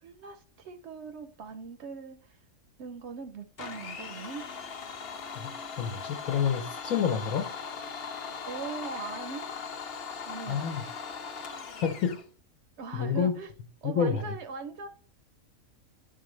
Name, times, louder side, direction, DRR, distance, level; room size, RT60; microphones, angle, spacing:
voice 1, 0.0-2.4 2.8-4.5 8.5-9.6 10.3-10.7 12.8-13.5 13.8-14.9, right 5 dB, 65° right, 0.7 m, -40 dB
Domestic sounds home sounds, 3.6-12.2, left 5 dB, 55° left, 0.8 m, -39 dB
voice 2, 5.8-7.5 10.5-10.8 11.8-12.2 12.9-13.3 13.8-14.2, left 7 dB, 80° left, 1.1 m, -28 dB
9.5 x 3.7 x 3.1 m
omnidirectional pair, 1.5 m